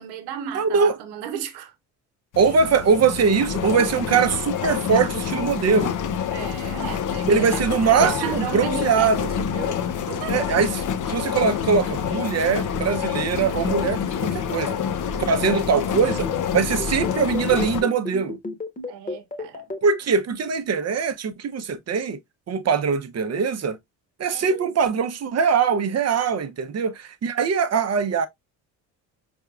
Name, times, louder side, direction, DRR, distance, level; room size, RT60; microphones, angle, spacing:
voice 1, 0.0-1.7 6.3-9.1 9.5-10.4 12.4-12.6 18.9-19.6 24.3-24.7, right 9 dB, 75° right, 0.9 m, -35 dB
voice 2, 0.5-0.9 2.4-5.9 7.3-9.2 10.3-14.8 15.3-16.3 16.5-18.4 19.8-22.2 22.5-23.8 24.2-28.3, right 5 dB, 40° right, 0.7 m, -22 dB
sound 1, 2.3-17.8, left 8 dB, 50° left, 0.7 m, -27 dB
sound 2, 16.1-19.8, left 3 dB, 20° left, 1.2 m, -32 dB
4.6 x 3.5 x 2.3 m
supercardioid pair, 70°, 40 cm